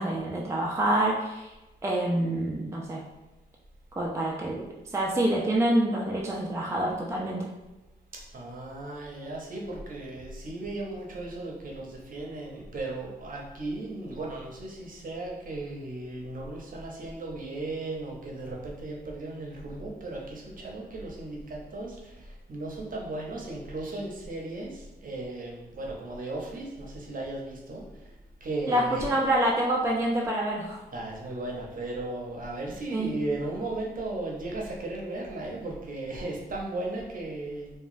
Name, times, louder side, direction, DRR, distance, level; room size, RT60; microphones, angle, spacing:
voice 1, 0.0-1.5 1.8-3.0 3.9-7.5 28.7-30.8 32.9-33.1, right 1 dB, 15° right, -2 dB, 0.4 m, -27 dB
voice 2, 8.1-28.1 28.4-29.0 30.9-37.7, right 2 dB, 55° right, -2 dB, 0.7 m, -36 dB
2.9 x 2.2 x 2.6 m, 1.0 s
cardioid pair, 70°, 17 cm